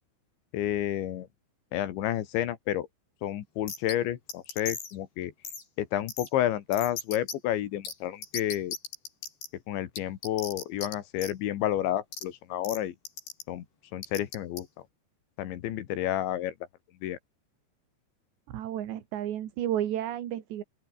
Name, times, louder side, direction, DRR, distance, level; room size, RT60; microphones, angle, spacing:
voice 1, 0.5-1.3 1.7-2.9 3.2-5.3 5.8-8.8 9.7-13.0 13.5-13.6 13.9-14.7 15.4-16.6 17.0-17.2, left 12 dB, 85° left, 4.1 m, -30 dB
sound 1, 3.7-3.9 4.3-4.9 5.4-5.6 6.1-6.3 6.7-7.3 7.8-7.9 8.2-9.5 10.0-10.9 11.2-11.3 12.1-12.2 12.6-12.8 13.1-13.4 14.0-14.6, left 5 dB, 65° left, 8.2 m, -37 dB
voice 2, 18.5-20.6, right 11 dB, 75° right, 4.2 m, -32 dB
open air
omnidirectional pair, 5.1 m